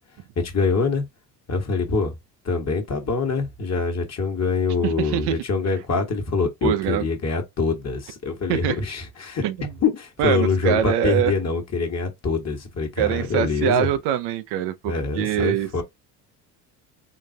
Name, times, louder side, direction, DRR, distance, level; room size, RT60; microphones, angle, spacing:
voice 1, 0.4-1.0 1.5-2.1 2.4-9.4 9.8-13.9 14.9-15.8, left 4 dB, 30° left, 1.3 m, -24 dB
voice 2, 4.8-5.4 6.6-7.0 8.5-8.8 9.4-9.7 10.2-11.3 13.0-15.7, right 11 dB, 55° right, 0.6 m, -23 dB
3.9 x 2.4 x 2.7 m
hypercardioid pair, 65°, 48 cm